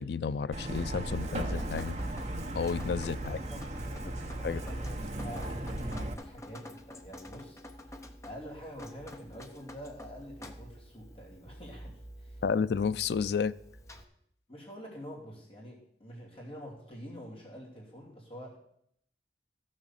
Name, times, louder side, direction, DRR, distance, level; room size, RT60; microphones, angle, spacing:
voice 1, 0.0-2.0 2.5-3.4 4.1-4.2 4.4-4.6 12.4-13.6, left 6 dB, 70° left, 0.4 m, -31 dB
Truck, 0.5-6.1, right 1 dB, 40° right, 1.1 m, -36 dB
Drip, 1.0-14.0, left 1 dB, 15° left, 0.9 m, -49 dB
voice 2, 3.1-12.4 14.5-18.6, equal, 30° left, 2.9 m, -47 dB
14.5 x 6.4 x 7.3 m
head